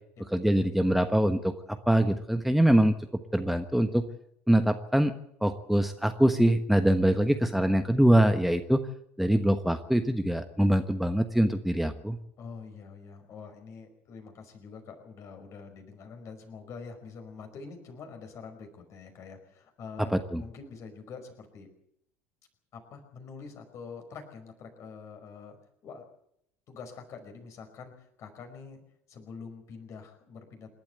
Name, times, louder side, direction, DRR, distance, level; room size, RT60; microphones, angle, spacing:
voice 1, 0.3-2.9 3.3-4.0 4.5-5.1 5.4-8.8 9.2-12.2 20.1-20.4, right 1 dB, ahead, 8 dB, 1.2 m, -24 dB
voice 2, 12.4-20.1 20.4-21.7 22.7-25.6 25.8-26.1 26.7-28.8 29.1-30.7, left 5 dB, 45° left, 6 dB, 5.2 m, -45 dB
27.5 x 12.0 x 8.0 m, 0.75 s
figure-of-eight pair, 65°, 7 cm